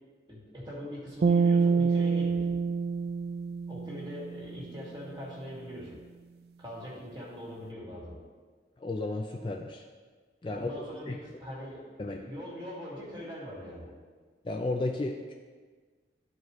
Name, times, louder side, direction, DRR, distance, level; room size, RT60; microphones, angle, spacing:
voice 1, 0.3-2.6 3.7-6.0 6.6-8.2 10.5-13.9, equal, 25° right, -6 dB, 2.1 m, -42 dB
sound 1, 1.2-4.6, right 5 dB, 60° right, 0.4 m, -26 dB
voice 2, 8.8-9.8 10.4-10.7 11.1-11.2 12.0-12.2 14.4-15.3, left 2 dB, 30° left, 2 dB, 0.4 m, -33 dB
12.5 x 4.8 x 3.1 m, 1.5 s
head